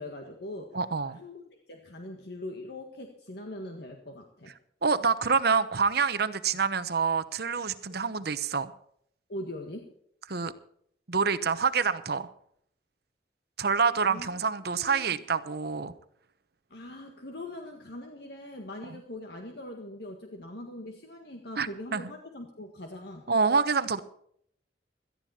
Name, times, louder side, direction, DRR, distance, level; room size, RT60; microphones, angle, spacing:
voice 1, 0.0-0.8 1.2-4.5 7.9-8.0 9.3-9.9 14.1-14.4 14.8-15.2 16.7-23.3, left 1 dB, 65° left, 3 dB, 1.7 m, -42 dB
voice 2, 0.7-1.2 4.8-8.7 10.3-10.5 11.1-12.3 13.6-15.9 21.6-22.0 23.3-24.0, right 5 dB, 60° right, 13 dB, 1.0 m, -27 dB
17.5 x 13.5 x 4.3 m, 0.67 s
head